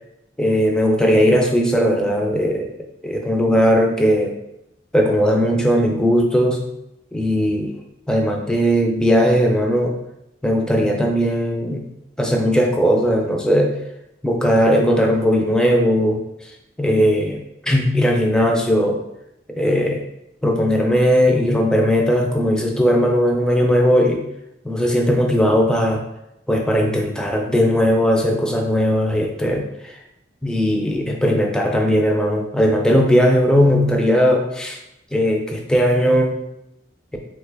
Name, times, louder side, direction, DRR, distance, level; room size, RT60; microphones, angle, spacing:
voice 1, 0.4-2.7 3.0-4.4 4.9-6.6 7.1-7.8 8.1-10.0 10.4-11.8 12.2-13.8 14.2-16.5 16.8-17.4 17.6-19.0 19.6-20.0 20.4-24.2 24.6-26.0 26.5-29.9 30.4-34.8 35.1-36.4, equal, 5° left, 1 dB, 0.3 m, -18 dB
3.2 x 2.2 x 3.3 m, 0.85 s
head